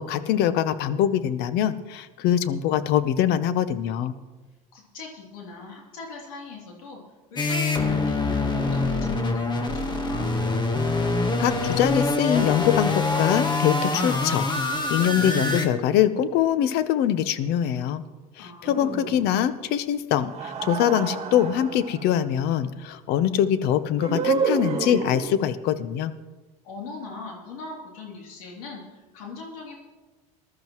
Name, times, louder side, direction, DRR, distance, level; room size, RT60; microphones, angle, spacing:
voice 1, 0.0-4.1 11.4-18.0 18.4-26.1, left 10 dB, 65° left, 14 dB, 0.8 m, -23 dB
voice 2, 4.7-7.0 7.3-10.3 18.4-19.1 26.6-29.8, left 3 dB, 85° left, -1 dB, 3.0 m, -41 dB
sound 1, 7.4-15.7, left 3 dB, 25° left, 1.3 m, -25 dB
sound 2, 18.6-19.5 20.2-22.0 24.0-25.5, right 6 dB, 35° right, 2.3 m, -29 dB
20.0 x 12.5 x 3.1 m, 1.2 s
supercardioid pair, 100°, 18 cm